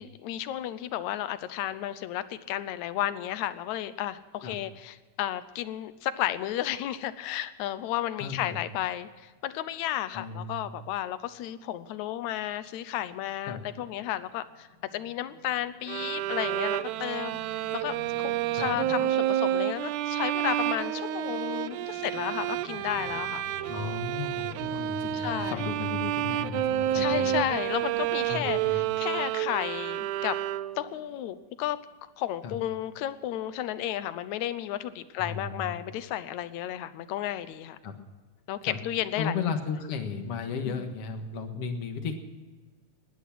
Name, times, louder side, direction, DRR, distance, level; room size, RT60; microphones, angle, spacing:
voice 1, 0.0-14.7 14.9-23.5 25.1-25.6 26.9-30.4 30.8-31.8 32.2-37.8 38.5-39.3 40.6-40.9, left 12 dB, 75° left, 14 dB, 2.1 m, -33 dB
voice 2, 8.2-8.6 10.1-10.7 13.5-13.6 18.6-18.7 23.7-27.4 28.3-28.9 32.4-32.6 35.2-35.8 37.8-38.0 38.6-38.8 39.2-42.2, left 5 dB, 55° left, 5 dB, 2.4 m, -35 dB
sound 1, 13.2-28.8, left 1 dB, 20° right, 5.5 m, -48 dB
sound 2, 15.9-31.0, right 12 dB, 85° right, 2.0 m, -30 dB
19.5 x 11.0 x 6.0 m, 1.3 s
omnidirectional pair, 3.4 m